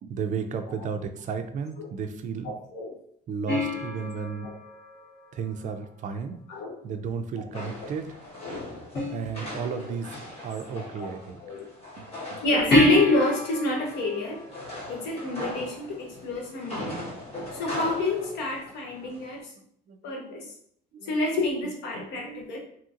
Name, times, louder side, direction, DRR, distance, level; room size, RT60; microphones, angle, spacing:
voice 1, 0.0-2.5 3.3-4.5 5.3-6.4 6.8-8.1 9.1-10.1 10.4-11.4 12.0-12.4 17.3-17.4 19.0-19.1 19.9-20.4 20.9-21.1 22.0-22.6, right 6 dB, 50° right, 8 dB, 0.4 m, -34 dB
voice 2, 2.4-2.9 4.4-4.5 6.5-6.7 7.5-7.9 11.0-11.1 11.4-11.6 12.4-14.4 14.9-16.9 17.5-19.4 20.0-20.4 21.0-22.6, left 2 dB, 85° left, 0 dB, 0.8 m, -27 dB
sound 1, 3.5-6.1 8.9-9.9 12.7-15.6 18.7-18.8, left 2 dB, 70° left, 1.4 m, -30 dB
sound 2, 7.5-19.4, left 1 dB, 35° left, 1.2 m, -40 dB
2.8 x 2.6 x 2.4 m, 0.65 s
cardioid pair, 110°, 17 cm